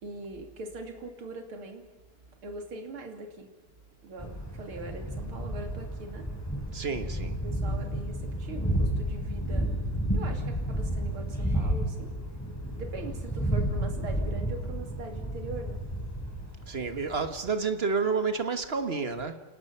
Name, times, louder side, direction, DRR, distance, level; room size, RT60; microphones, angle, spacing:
voice 1, 0.0-1.8 2.4-3.5 4.0-6.3 7.4-9.7 10.1-12.1 12.7-15.8, right 2 dB, 70° right, 3.6 m, -41 dB
Thunder, 4.2-17.5, right 1 dB, 5° left, 5.3 m, -32 dB
voice 2, 6.7-7.4 16.7-19.4, right 5 dB, 30° right, 1.4 m, -30 dB
29.0 x 18.5 x 5.7 m
omnidirectional pair, 2.4 m